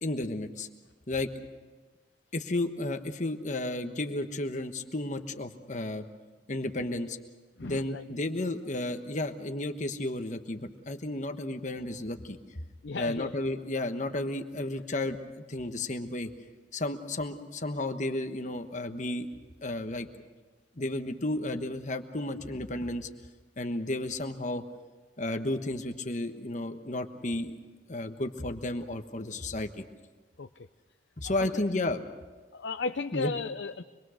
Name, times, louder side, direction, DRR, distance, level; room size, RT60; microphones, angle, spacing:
voice 1, 0.0-0.7 1.1-1.3 2.3-6.0 6.5-7.2 7.6-12.4 12.9-15.2 15.5-16.3 16.7-19.3 19.6-20.1 20.8-23.1 23.6-24.6 25.2-27.5 27.9-29.8 31.2-32.0 33.1-33.3, left 2 dB, 40° left, 7 dB, 1.3 m, -33 dB
voice 2, 7.6-8.0 12.8-13.3 30.4-30.7 31.5-31.6 32.5-33.8, left 4 dB, 75° left, 7 dB, 0.7 m, -35 dB
25.5 x 22.0 x 6.5 m, 1.3 s
head